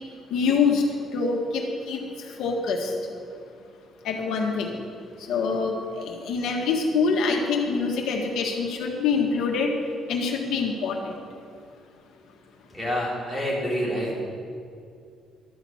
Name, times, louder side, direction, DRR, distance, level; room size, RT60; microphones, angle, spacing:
voice 1, 0.3-0.8 1.1-2.0 2.4-2.9 4.0-4.7 5.3-9.7 10.1-11.2, left 5 dB, 80° left, 1 dB, 1.5 m, -25 dB
voice 2, 12.7-14.2, equal, 5° right, -5 dB, 3.2 m, -27 dB
12.5 x 6.0 x 8.6 m, 2.4 s
cardioid pair, 145°, 0 cm